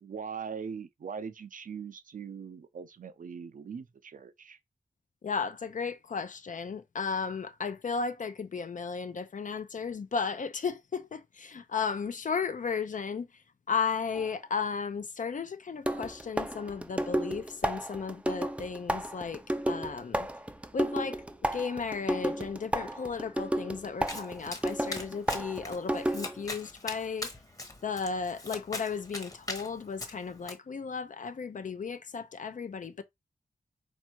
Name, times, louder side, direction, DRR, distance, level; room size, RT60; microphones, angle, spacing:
voice 1, 0.0-4.6, right 6 dB, 65° right, 0.5 m, -41 dB
voice 2, 5.2-13.3 13.7-20.3 20.7-21.2 21.5-27.3 27.8-33.0, left 5 dB, 60° left, 0.6 m, -34 dB
sound 1, 14.1-14.3 15.9-26.5, right 1 dB, 10° right, 0.5 m, -33 dB
Domestic sounds home sounds, 24.1-30.5, left 2 dB, 20° left, 1.0 m, -41 dB
4.4 x 2.5 x 4.5 m
wide cardioid pair, 100°, 15 cm